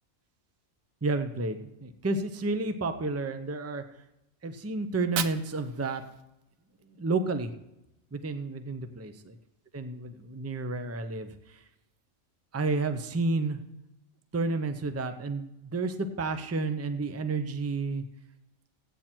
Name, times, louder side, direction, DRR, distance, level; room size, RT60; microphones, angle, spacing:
voice 1, 1.0-3.8 4.4-6.0 7.0-7.5 8.1-9.4 9.7-11.3 12.5-13.6 14.3-18.0, right 3 dB, 15° right, 8 dB, 0.5 m, -31 dB
Fire, 4.8-6.9, right 9 dB, 80° right, 1.0 m, -38 dB
16.0 x 8.8 x 4.5 m, 0.92 s
omnidirectional pair, 1.4 m